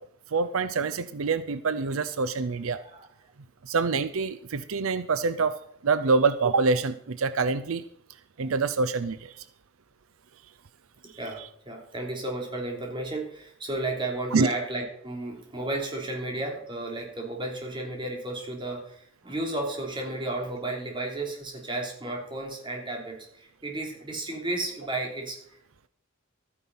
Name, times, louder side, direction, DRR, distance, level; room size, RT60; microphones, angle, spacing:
voice 1, 0.3-2.8 3.6-5.6 5.8-7.8 8.4-9.4 14.3-14.5, right 4 dB, 85° right, 13 dB, 0.6 m, -26 dB
voice 2, 2.7-3.3 8.4-8.5 11.0-25.4, right 2 dB, 25° right, 0 dB, 3.2 m, -33 dB
13.0 x 9.8 x 5.4 m, 0.68 s
head